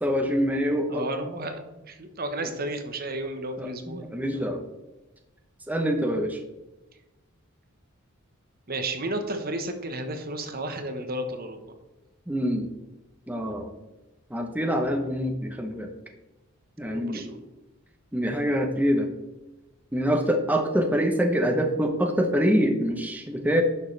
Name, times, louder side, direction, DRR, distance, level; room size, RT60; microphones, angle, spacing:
voice 1, 0.0-1.0 3.6-4.6 5.7-6.4 12.3-12.7 13.3-13.7 14.3-15.9 16.8-17.2 18.1-19.1 19.9-23.6, equal, 10° right, 3 dB, 0.8 m, -25 dB
voice 2, 0.9-1.6 1.9-4.5 8.7-11.8 16.8-17.5, right 1 dB, 45° right, 6 dB, 1.1 m, -33 dB
11.0 x 6.5 x 3.3 m, 1.0 s
head